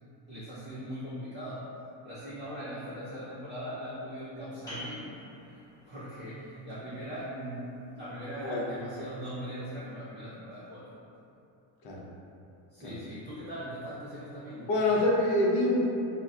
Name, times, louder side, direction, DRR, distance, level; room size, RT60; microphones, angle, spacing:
voice 1, 0.3-1.6 2.0-5.1 5.5-11.1 12.7-14.7, equal, 25° right, -11 dB, 0.3 m, -40 dB
sound 1, 4.7-10.0, left 1 dB, 10° left, 0.7 m, -50 dB
voice 2, 8.3-8.6 11.8-12.0 12.8-13.0 14.7-15.9, left 1 dB, 60° left, -3 dB, 0.6 m, -26 dB
2.2 x 2.1 x 3.6 m, 2.7 s
cardioid pair, 160°, 48 cm